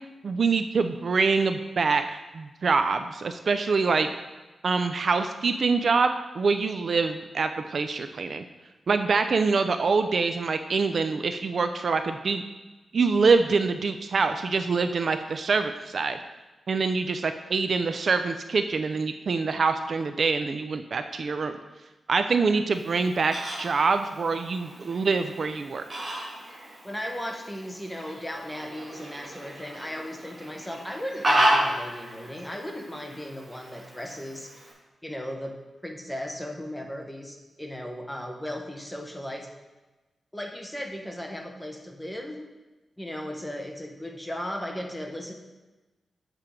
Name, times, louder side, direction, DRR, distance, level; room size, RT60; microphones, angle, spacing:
voice 1, 0.2-4.1 4.6-8.4 8.9-12.4 12.9-16.2 16.7-21.6 22.1-25.8, right 4 dB, 55° right, 8 dB, 0.4 m, -25 dB
Fowl, 22.7-34.7, right 1 dB, 30° right, 1.9 m, -32 dB
voice 2, 26.8-34.5 35.0-35.5 35.8-39.5 40.3-42.5 43.0-45.3, left 1 dB, 5° left, 2 dB, 1.0 m, -36 dB
7.6 x 4.5 x 5.0 m, 1.2 s
wide cardioid pair, 105°, 0 cm